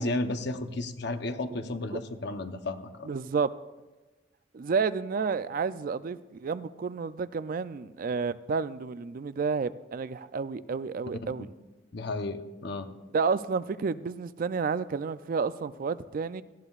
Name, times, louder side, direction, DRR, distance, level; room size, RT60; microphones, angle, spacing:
voice 1, 0.0-2.9 11.9-12.9, left 2 dB, 60° left, 8 dB, 0.8 m, -33 dB
voice 2, 3.0-3.5 4.5-11.5 13.1-16.4, right 5 dB, 50° right, 14 dB, 0.4 m, -30 dB
18.0 x 13.0 x 2.4 m, 1.1 s
head